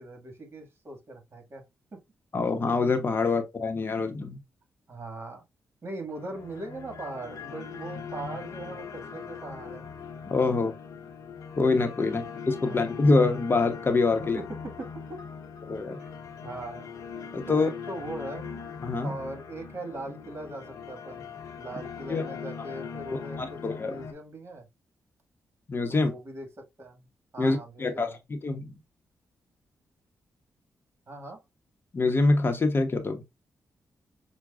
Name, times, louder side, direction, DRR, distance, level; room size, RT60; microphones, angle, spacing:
voice 1, 0.0-1.6 1.9-2.0 3.2-3.4 4.9-5.4 5.8-9.8 12.0-12.2 12.6-12.9 14.2-15.2 16.0-16.1 16.4-16.9 17.5-18.6 19.0-21.3 21.5-24.7 25.9-26.5 26.8-27.1 27.3-28.2 31.1-31.4, right 2 dB, 45° right, 1.8 m, -40 dB
voice 2, 2.3-4.4 10.3-10.7 11.6-14.4 15.7-16.0 17.3-17.7 18.8-19.1 22.1-22.2 23.4-23.9 25.7-26.1 27.4-28.7 31.9-33.2, left 3 dB, 40° left, 0.9 m, -25 dB
sound 1, 6.1-24.1, left 6 dB, 70° left, 0.9 m, -41 dB
5.9 x 2.3 x 2.4 m
cardioid pair, 65°, 6 cm